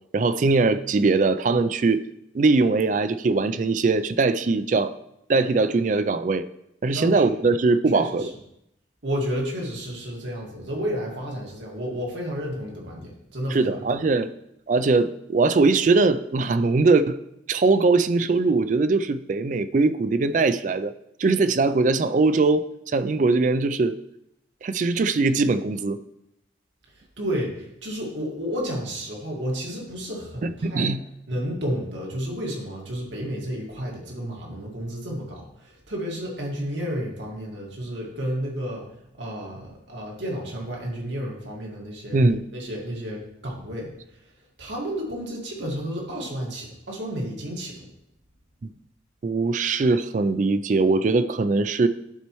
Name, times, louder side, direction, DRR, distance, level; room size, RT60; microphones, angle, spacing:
voice 1, 0.1-2.0 2.3-4.9 5.3-6.5 6.8-8.2 13.5-14.3 14.7-17.2 17.5-20.9 21.2-24.0 24.6-26.0 30.6-31.0 42.1-42.4 49.2-51.9, right 3 dB, 40° right, 13 dB, 0.3 m, -21 dB
voice 2, 6.9-7.3 7.9-8.3 9.0-14.0 26.9-30.9 31.3-42.2 42.5-44.3 44.6-47.9, equal, 75° right, -2 dB, 1.9 m, -31 dB
11.5 x 4.4 x 3.1 m, 0.80 s
head